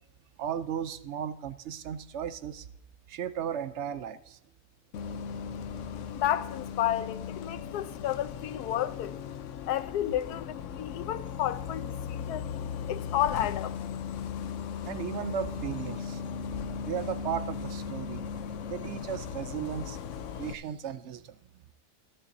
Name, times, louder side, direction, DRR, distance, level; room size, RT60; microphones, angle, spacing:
voice 1, 0.4-2.6 3.1-4.4 14.8-16.2 16.9-18.2 18.7-20.0 20.4-21.2, right 8 dB, 65° right, 0.7 m, -35 dB
Bus, 4.9-20.5, left 7 dB, 65° left, 0.8 m, -37 dB
voice 2, 6.1-9.1 9.7-12.5 12.9-14.0, left 12 dB, 85° left, 1.2 m, -31 dB
16.0 x 12.0 x 2.6 m
omnidirectional pair, 1.7 m